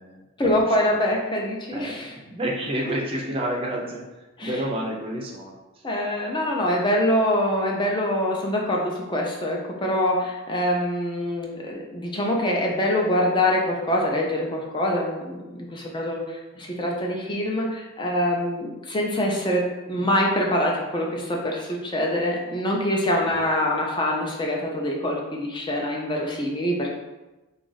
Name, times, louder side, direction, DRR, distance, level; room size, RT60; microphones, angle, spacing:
voice 1, 0.4-2.1 4.4-4.6 5.8-26.9, left 1 dB, 20° left, -1 dB, 0.5 m, -24 dB
voice 2, 1.7-4.0 4.4-5.6 23.2-23.4, right 1 dB, 25° right, -1 dB, 0.5 m, -29 dB
3.9 x 2.4 x 3.9 m, 1.1 s
head